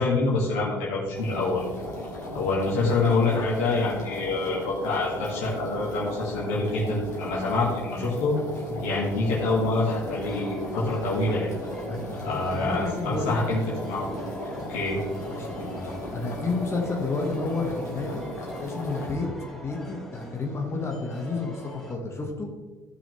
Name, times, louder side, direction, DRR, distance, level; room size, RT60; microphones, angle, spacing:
voice 1, 0.0-1.6 2.3-8.4 8.8-11.5 12.2-13.6 13.9-14.1 14.7-15.0, left 3 dB, 70° left, -5 dB, 2.5 m, -26 dB
sound 1, 1.1-19.2, left 1 dB, 85° left, 2.4 m, -37 dB
sound 2, 10.2-22.0, equal, 5° left, 3.3 m, -41 dB
voice 2, 11.9-12.2 12.5-13.5 15.3-18.2 18.6-22.5, left 3 dB, 30° left, 0 dB, 2.0 m, -31 dB
16.0 x 6.2 x 3.5 m, 1.4 s
figure-of-eight pair, 55°, 9 cm